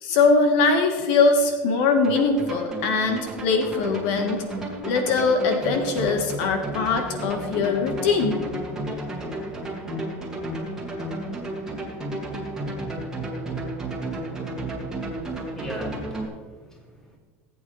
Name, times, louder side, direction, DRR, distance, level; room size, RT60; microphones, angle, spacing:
voice 1, 0.0-4.4 4.8-8.4, left 4 dB, 70° left, 5 dB, 1.4 m, -22 dB
sound 1, 2.0-16.3, right 1 dB, 10° right, 2.2 m, -32 dB
voice 2, 15.1-17.2, equal, 10° left, -1 dB, 2.5 m, -40 dB
18.0 x 8.6 x 3.2 m, 1.4 s
supercardioid pair, 150°, 7 cm